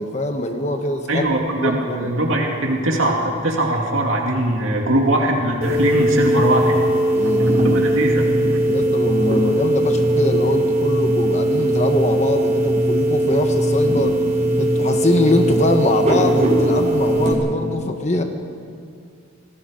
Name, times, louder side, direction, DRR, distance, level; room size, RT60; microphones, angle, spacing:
voice 1, 0.0-1.3 1.6-2.1 7.1-7.9 8.7-14.2 14.6-18.2, left 1 dB, 35° left, 4 dB, 1.2 m, -23 dB
voice 2, 1.1-6.8 7.4-8.2, right 1 dB, 90° right, 0 dB, 2.6 m, -21 dB
sound 1, 5.6-17.3, right 1 dB, 35° right, 3.9 m, -19 dB
27.0 x 20.0 x 5.3 m, 2.3 s
head